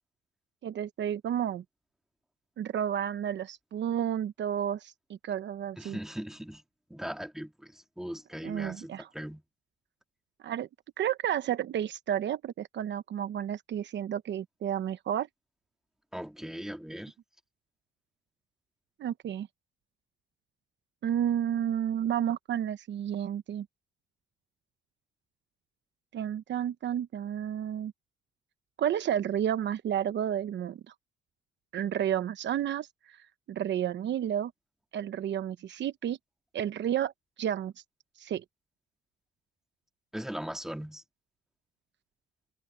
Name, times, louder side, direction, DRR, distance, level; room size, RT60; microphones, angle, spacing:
voice 1, 0.6-1.6 2.6-6.0 8.4-9.1 10.4-10.7 11.0-15.3 19.0-19.5 21.0-23.7 26.1-27.9 28.8-30.8 31.7-33.2 33.5-34.5 34.9-36.2 36.5-37.1 37.4-37.7 38.2-38.4, right 10 dB, 65° right, 0.9 m, -31 dB
voice 2, 5.8-6.6 6.9-9.4 16.1-17.1 40.1-41.0, equal, ahead, 2.8 m, -39 dB
cardioid pair, 90°, 20 cm